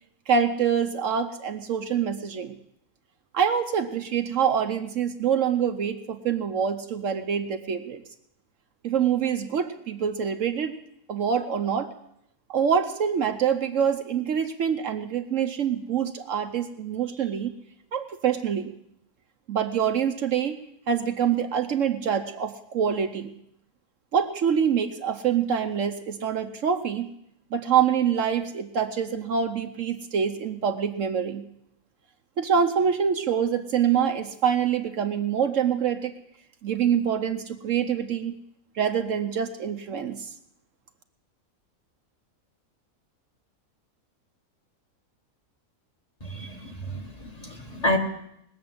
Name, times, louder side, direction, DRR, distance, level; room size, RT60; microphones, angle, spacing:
voice 1, 0.3-2.5 3.3-8.0 8.8-10.7 11.1-11.9 12.5-17.5 17.9-18.7 19.5-23.3 24.1-27.1 27.5-31.4 32.4-36.1 36.6-38.4 38.8-40.3, right 7 dB, 65° right, 8 dB, 1.1 m, -25 dB
voice 2, 46.2-48.0, left 1 dB, 25° left, 2 dB, 1.6 m, -29 dB
20.0 x 7.0 x 7.7 m, 0.79 s
omnidirectional pair, 1.5 m